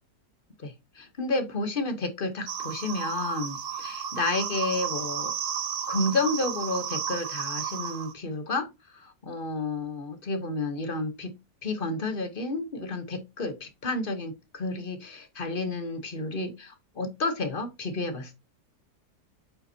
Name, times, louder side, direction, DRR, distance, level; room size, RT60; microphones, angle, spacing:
voice 1, 0.6-5.3 5.9-11.4 11.6-18.4, left 2 dB, 35° left, 1.2 m, -31 dB
sound 1, 2.5-8.1, right 7 dB, 60° right, 1.0 m, -32 dB
8.8 x 5.5 x 2.8 m
omnidirectional pair, 1.7 m